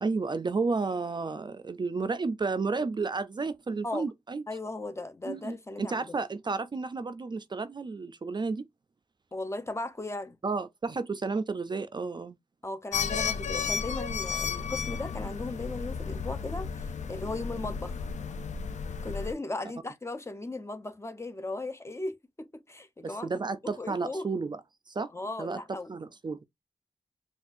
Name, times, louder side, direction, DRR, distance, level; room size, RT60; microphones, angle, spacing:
voice 1, 0.0-4.4 5.2-8.7 10.4-12.4 23.0-24.6 24.9-25.1 25.4-25.6 25.9-26.4, right 4 dB, 40° right, 0.3 m, -32 dB
voice 2, 4.5-6.2 9.3-10.4 12.6-18.0 19.0-23.3 23.6-24.3 25.1-25.9, left 2 dB, 20° left, 0.5 m, -37 dB
sound 1, 12.9-19.3, left 6 dB, 80° left, 0.4 m, -33 dB
4.2 x 2.3 x 2.5 m
wide cardioid pair, 105°, 12 cm